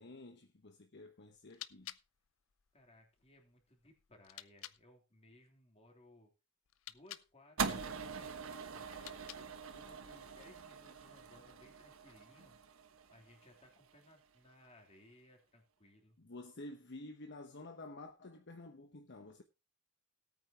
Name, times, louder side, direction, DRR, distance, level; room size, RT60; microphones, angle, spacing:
voice 1, 0.0-1.9 16.2-19.4, left 2 dB, 55° left, 1.1 m, -51 dB
sound 1, 1.3-4.8 6.6-7.3 8.9-9.7, left 13 dB, 80° left, 0.6 m, -53 dB
voice 2, 2.7-6.3 6.9-12.6 13.1-16.2, left 1 dB, 30° left, 3.3 m, -63 dB
sound 2, 7.6-13.9, right 5 dB, 85° right, 1.2 m, -43 dB
17.5 x 8.9 x 2.9 m
head